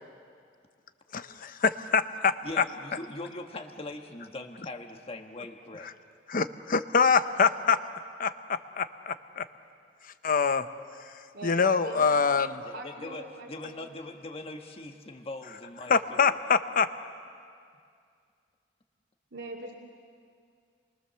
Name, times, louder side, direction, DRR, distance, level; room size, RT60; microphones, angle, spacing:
voice 1, 1.1-2.6 6.3-7.8 8.2-9.4 10.2-10.7 11.4-12.5 15.9-16.9, left 5 dB, 50° left, 11 dB, 0.8 m, -25 dB
voice 2, 2.4-5.9 12.6-16.3, left 2 dB, 30° left, 4 dB, 1.4 m, -41 dB
voice 3, 11.3-12.3 12.7-13.9 19.3-19.7, right 2 dB, 75° right, -4 dB, 2.5 m, -42 dB
28.5 x 23.0 x 6.9 m, 2.3 s
head